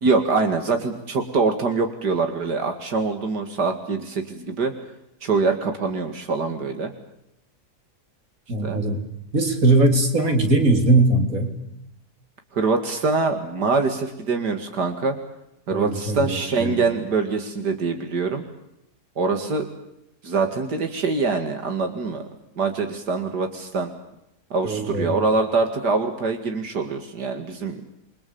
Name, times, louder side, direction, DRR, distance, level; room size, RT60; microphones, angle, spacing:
voice 1, 0.0-4.7 5.2-6.9 8.6-8.8 12.5-15.2 15.7-18.4 19.2-19.7 20.2-22.3 22.6-23.9 24.5-27.8, right 4 dB, 85° right, 6 dB, 2.8 m, -24 dB
voice 2, 8.5-9.0 9.3-11.5 15.7-16.9 24.6-25.2, right 2 dB, 55° right, 5 dB, 4.0 m, -20 dB
29.5 x 23.5 x 7.0 m, 0.83 s
omnidirectional pair, 1.7 m